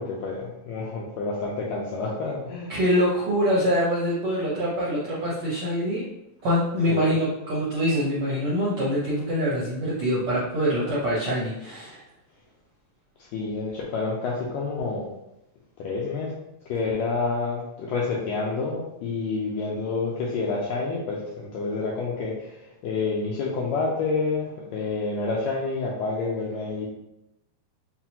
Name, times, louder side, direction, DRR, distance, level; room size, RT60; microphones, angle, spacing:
voice 1, 0.0-2.7 6.9-7.1 13.2-15.1 15.8-16.3 16.7-26.9, left 4 dB, 80° left, -3 dB, 1.5 m, -28 dB
voice 2, 2.7-6.0 6.4-12.0, equal, 75° right, -7 dB, 1.2 m, -24 dB
5.6 x 2.2 x 2.8 m, 0.88 s
omnidirectional pair, 3.6 m